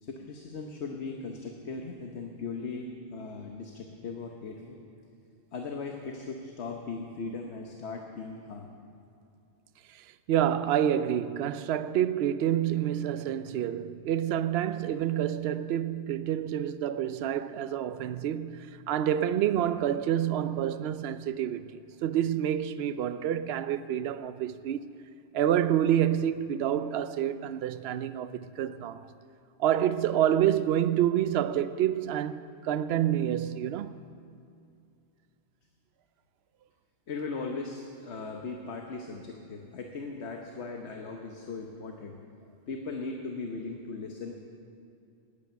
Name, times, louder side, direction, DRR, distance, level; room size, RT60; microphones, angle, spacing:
voice 1, 0.0-4.8 5.5-8.7 37.1-42.1 42.7-44.3, left 4 dB, 75° left, 1.3 m, -38 dB
voice 2, 9.9-24.8 25.3-29.1 29.6-34.0, right 10 dB, 70° right, 0.8 m, -28 dB
19.0 x 8.6 x 6.9 m
omnidirectional pair, 1.1 m